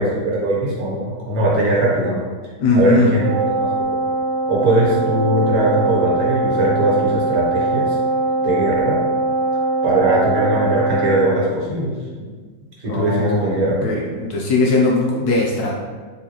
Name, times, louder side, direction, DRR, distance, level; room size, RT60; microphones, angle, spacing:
voice 1, 0.0-2.3 2.7-4.0 4.5-8.0 8.4-9.0 9.8-12.3 12.8-13.8, right 1 dB, 60° right, -5 dB, 1.3 m, -20 dB
voice 2, 2.6-3.1 12.9-15.7, left 2 dB, 70° left, -2 dB, 1.0 m, -19 dB
Wind instrument woodwind instrument, 3.2-11.4, right 3 dB, 90° right, 1.5 m, -21 dB
4.3 x 3.1 x 2.9 m, 1.5 s
omnidirectional pair, 1.9 m